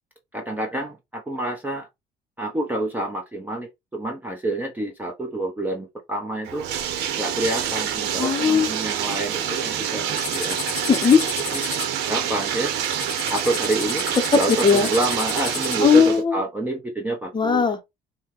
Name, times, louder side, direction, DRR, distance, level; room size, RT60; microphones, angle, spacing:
voice 1, 0.3-1.9 2.4-6.6 7.2-10.6 11.5-11.6 12.0-12.7 13.3-17.7, right 2 dB, 10° right, 0.7 m, -28 dB
Bathtub (filling or washing), 6.4-16.2, right 9 dB, 85° right, 0.8 m, -27 dB
voice 2, 8.2-8.7 10.9-11.2 14.3-14.9 15.8-16.4 17.3-17.8, left 6 dB, 25° left, 0.8 m, -17 dB
sound 1, 10.2-15.8, left 11 dB, 80° left, 0.8 m, -34 dB
5.6 x 2.2 x 3.0 m
cardioid pair, 110°, 17 cm